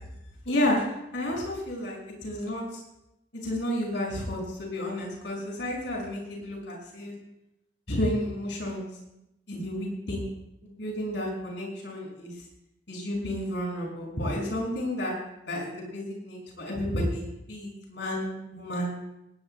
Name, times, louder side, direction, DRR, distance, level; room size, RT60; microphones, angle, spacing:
voice 1, 0.4-0.9 1.1-2.8 3.4-7.1 7.9-8.9 9.5-10.3 10.6-12.3 12.9-15.2 15.5-18.9, left 1 dB, 65° left, -1 dB, 5.9 m, -31 dB
20.5 x 19.0 x 2.2 m, 0.86 s
head